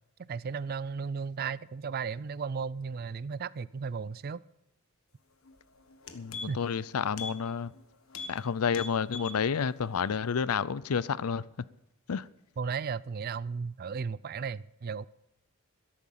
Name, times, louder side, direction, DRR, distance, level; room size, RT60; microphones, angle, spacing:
voice 1, 0.2-4.4 6.5-6.6 12.6-15.1, right 5 dB, 45° right, 0.4 m, -35 dB
sound 1, 5.5-5.6 5.9-6.8 7.1-7.4 7.7-7.8 8.1-8.4 8.7-9.4 9.8-9.9, left 4 dB, 70° left, 1.4 m, -41 dB
voice 2, 6.1-7.7 8.3-11.4 12.1-12.2, left 6 dB, 90° left, 0.5 m, -30 dB
13.5 x 11.0 x 5.6 m
head